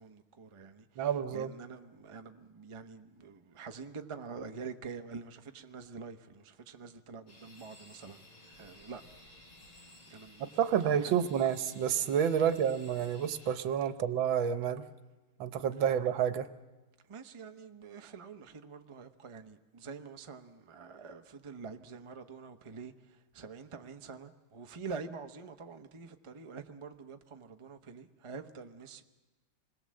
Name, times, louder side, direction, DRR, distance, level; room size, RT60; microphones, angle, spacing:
voice 1, 0.0-9.0 10.1-10.5 11.0-11.1 17.1-29.0, right 5 dB, 25° right, 0.6 m, -46 dB
voice 2, 1.0-1.5 10.6-14.8 15.4-16.5, right 8 dB, 75° right, 1.7 m, -29 dB
sound 1, 7.3-13.5, left 1 dB, 85° left, 6.0 m, -56 dB
27.0 x 21.0 x 7.7 m
omnidirectional pair, 2.2 m